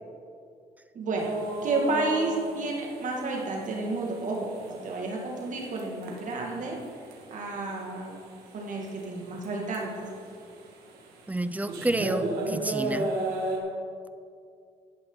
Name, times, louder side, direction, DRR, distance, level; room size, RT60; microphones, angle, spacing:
voice 1, 0.9-1.3 1.6-6.8 7.3-8.2 8.5-10.1, right 3 dB, 55° right, -1 dB, 2.2 m, -31 dB
sound 1, 1.2-13.6, right 2 dB, 90° right, 1.9 m, -36 dB
voice 2, 11.3-13.1, right 1 dB, 10° right, 12 dB, 0.6 m, -29 dB
12.0 x 11.0 x 4.0 m, 2.4 s
cardioid pair, 85°, 15 cm